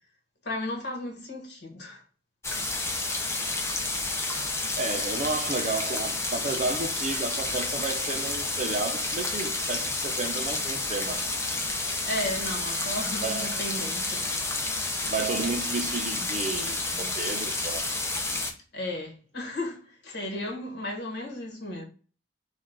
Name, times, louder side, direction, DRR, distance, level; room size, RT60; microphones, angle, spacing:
voice 1, 0.4-2.0 11.9-14.3 18.7-21.8, left 1 dB, 60° left, 1.6 m, -34 dB
sound 1, 2.4-18.5, left 2 dB, 15° left, 0.7 m, -30 dB
voice 2, 4.8-11.3 13.2-13.6 15.1-17.9, right 3 dB, 40° right, 0.7 m, -32 dB
5.3 x 2.5 x 3.8 m
head